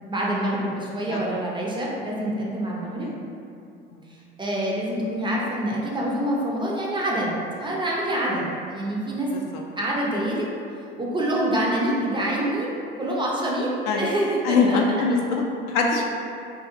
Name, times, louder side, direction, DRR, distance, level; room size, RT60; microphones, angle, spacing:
voice 1, 0.1-3.1 4.4-9.3 9.8-10.4 11.0-14.8, right 1 dB, 15° right, -4 dB, 0.4 m, -26 dB
voice 2, 14.4-16.1, left 4 dB, 60° left, 0 dB, 0.4 m, -23 dB
2.7 x 2.3 x 2.4 m, 2.5 s
hypercardioid pair, 65°, 31 cm